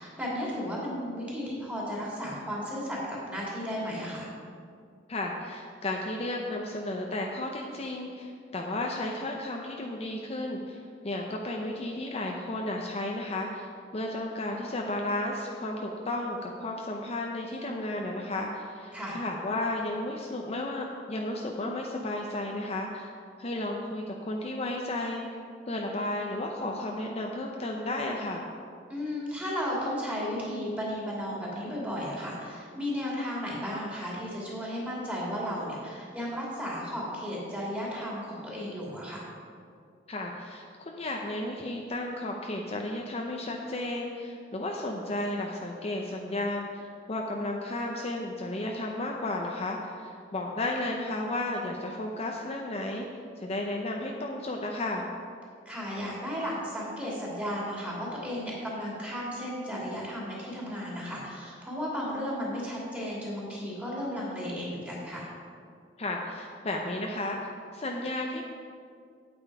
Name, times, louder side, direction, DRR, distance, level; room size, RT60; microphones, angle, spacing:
voice 1, 0.0-4.3 18.9-19.2 28.9-39.3 55.6-65.3, equal, 10° right, -6 dB, 2.6 m, -34 dB
voice 2, 5.1-23.1 23.4-25.4 25.7-28.5 40.1-53.1 53.4-55.1 66.0-68.5, left 1 dB, 35° left, 1 dB, 0.6 m, -33 dB
8.8 x 8.7 x 4.8 m, 2.3 s
head